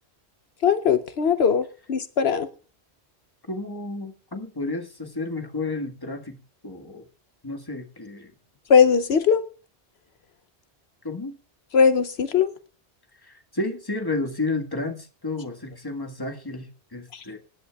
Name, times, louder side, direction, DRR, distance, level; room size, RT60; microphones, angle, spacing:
voice 1, 0.6-2.5 8.7-9.4 11.7-12.5, left 6 dB, 75° left, 11 dB, 1.0 m, -19 dB
voice 2, 3.5-6.4 6.6-7.0 7.4-8.3 11.0-11.3 13.2-17.4, left 2 dB, 20° left, 4 dB, 1.7 m, -31 dB
25.0 x 11.0 x 2.4 m, 0.35 s
omnidirectional pair, 1.1 m